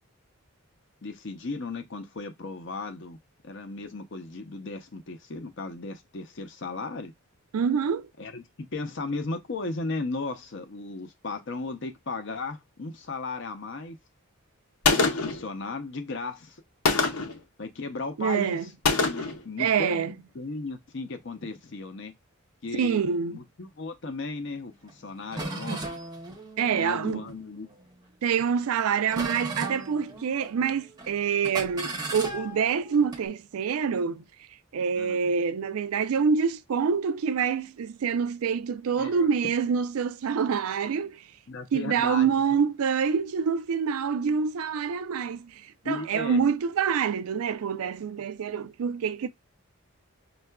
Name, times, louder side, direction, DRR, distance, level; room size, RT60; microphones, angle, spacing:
voice 1, 1.0-3.2 3.4-7.1 8.2-14.0 15.0-16.6 17.6-18.7 19.0-22.1 22.6-25.9 26.7-27.7 35.0-35.2 39.0-39.3 41.5-42.3 45.8-46.4, left 3 dB, 55° left, 0.6 m, -36 dB
voice 2, 7.5-8.1 18.2-18.7 19.6-20.2 22.7-23.4 25.7-25.8 26.6-27.2 28.2-34.2 34.7-41.2 41.7-49.3, right 6 dB, 75° right, 0.4 m, -26 dB
Gunshot gunfire, 14.8-15.4 16.9-17.4 18.9-19.4, left 4 dB, 85° left, 0.8 m, -24 dB
sound 1, 24.9-25.0 25.3-27.8 28.3-28.7 29.1-30.7 31.0-31.2 31.4-33.2, right 2 dB, 20° right, 0.6 m, -37 dB
5.4 x 2.3 x 2.2 m
head